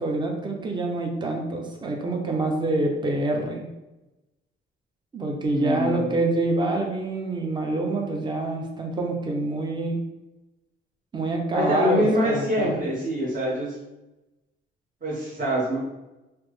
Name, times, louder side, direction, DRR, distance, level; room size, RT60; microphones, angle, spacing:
voice 1, 0.0-3.6 5.1-10.0 11.1-12.8, right 2 dB, 25° right, 1 dB, 0.6 m, -26 dB
voice 2, 5.5-6.2 11.5-13.7 15.0-15.8, equal, 40° right, -7 dB, 1.0 m, -25 dB
3.2 x 2.0 x 3.1 m, 0.99 s
cardioid pair, 90°, 20 cm